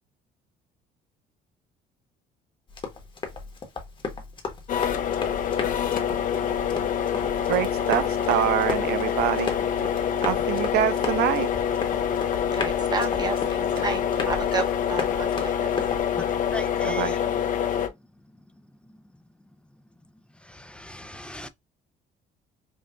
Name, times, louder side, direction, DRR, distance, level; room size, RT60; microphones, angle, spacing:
Run, 2.7-16.0, left 4 dB, 30° left, 1.0 m, -35 dB
sound 1, 4.7-17.9, left 8 dB, 50° left, 0.6 m, -26 dB
voice 1, 7.5-9.5 10.2-11.5 16.8-17.1, right 12 dB, 75° right, 0.4 m, -25 dB
voice 2, 12.5-15.8, right 4 dB, 25° right, 0.9 m, -32 dB
voice 3, 16.1-17.4 20.4-21.5, left 1 dB, 5° left, 0.4 m, -39 dB
5.2 x 2.3 x 2.4 m
cardioid pair, 110°, 17 cm